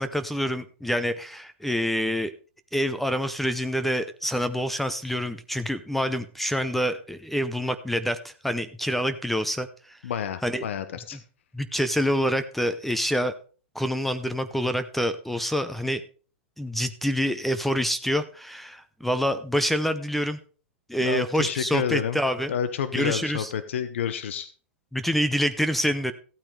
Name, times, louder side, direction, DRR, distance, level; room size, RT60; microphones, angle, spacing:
voice 1, 0.0-2.3 2.7-10.0 10.4-10.6 11.5-13.3 13.7-16.0 16.6-20.4 20.9-22.5 22.9-23.5 24.9-26.1, equal, ahead, 12 dB, 0.7 m, -26 dB
voice 2, 10.0-11.2 21.0-22.2 22.5-24.5, left 8 dB, 75° left, 12 dB, 0.9 m, -29 dB
15.0 x 8.8 x 3.3 m, 0.39 s
hypercardioid pair, 120°, 7 cm